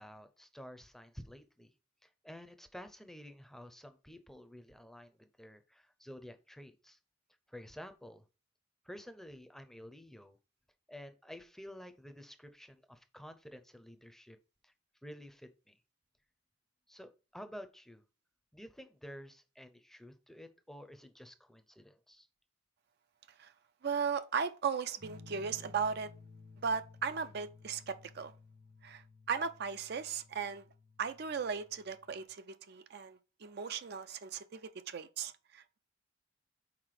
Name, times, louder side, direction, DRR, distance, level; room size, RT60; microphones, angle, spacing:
voice 1, 0.0-1.7 2.0-7.0 7.5-8.3 8.8-10.4 10.9-14.4 14.6-14.7 15.0-15.8 16.9-18.0 18.5-22.3, equal, ahead, 0.6 m, -51 dB
voice 2, 23.8-26.1 26.6-28.3 28.8-30.6 31.0-35.8, right 6 dB, 55° right, 0.5 m, -37 dB
sound 1, 25.0-32.2, left 3 dB, 80° right, 2.6 m, -56 dB
5.9 x 4.3 x 4.8 m
head